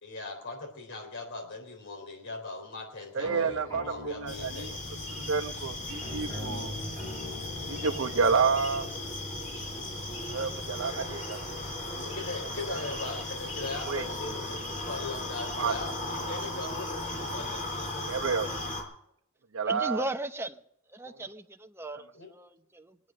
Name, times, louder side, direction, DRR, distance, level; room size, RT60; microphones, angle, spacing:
voice 1, 0.0-4.7 12.0-18.3 22.1-22.3, left 3 dB, 60° left, 3.6 m, -40 dB
voice 2, 3.1-4.8 5.1-6.7 7.7-8.9 10.3-11.4 12.7-12.8 13.8-14.0 15.6-15.7 18.1-18.5 19.5-20.1, right 5 dB, 65° right, 0.9 m, -29 dB
sound 1, 3.2-10.7, left 1 dB, 15° left, 7.5 m, -44 dB
sound 2, 4.3-18.8, left 2 dB, 35° left, 4.5 m, -36 dB
voice 3, 19.6-20.6 20.9-23.0, right 1 dB, 10° right, 0.8 m, -37 dB
21.5 x 9.3 x 6.5 m
head